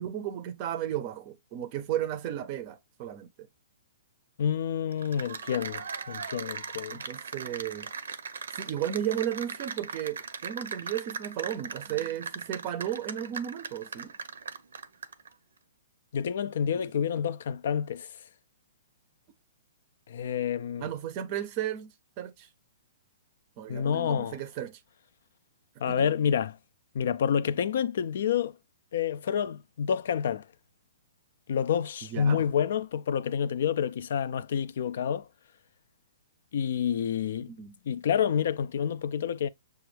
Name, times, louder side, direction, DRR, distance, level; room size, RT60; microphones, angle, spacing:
voice 1, 0.0-3.5 6.9-7.9 8.5-14.1 20.8-22.5 23.6-24.8 25.9-26.1 32.1-32.4 37.5-37.8, right 11 dB, 30° right, 0.5 m, -34 dB
voice 2, 4.4-7.0 16.1-18.1 20.1-20.9 23.7-24.4 25.8-26.5 26.9-28.5 28.9-30.4 31.5-35.3 36.5-37.5 37.9-39.5, left 8 dB, 60° left, 0.3 m, -28 dB
Cheering / Applause, 4.9-15.3, right 5 dB, 90° right, 0.6 m, -39 dB
6.9 x 2.3 x 3.2 m
hypercardioid pair, 165°, 0 cm